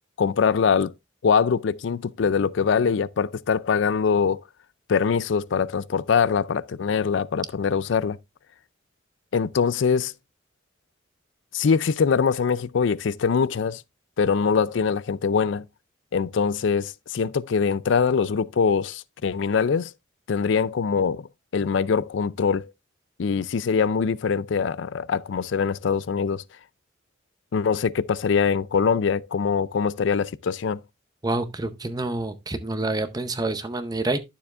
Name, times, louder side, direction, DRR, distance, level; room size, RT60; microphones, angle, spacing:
voice 1, 0.2-0.9 1.2-4.4 4.9-8.2 9.3-10.1 11.5-13.8 14.2-15.7 16.1-19.9 20.3-21.3 21.5-22.7 23.2-26.4 27.5-30.8, left 6 dB, 70° left, 0.4 m, -23 dB
voice 2, 31.2-34.2, right 2 dB, 20° right, 0.7 m, -27 dB
12.0 x 7.0 x 2.4 m
head